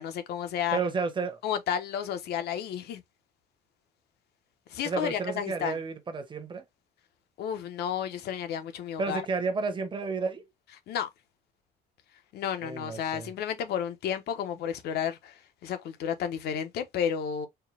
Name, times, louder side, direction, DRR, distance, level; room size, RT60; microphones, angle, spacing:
voice 1, 0.0-0.8 1.4-3.0 4.7-5.8 7.4-9.2 10.9-11.1 12.3-17.5, left 8 dB, 70° left, 0.9 m, -32 dB
voice 2, 0.7-1.4 4.8-6.6 9.0-10.4 12.6-13.3, right 4 dB, 30° right, 1.0 m, -31 dB
4.5 x 2.2 x 3.2 m
cardioid pair, 110°, 17 cm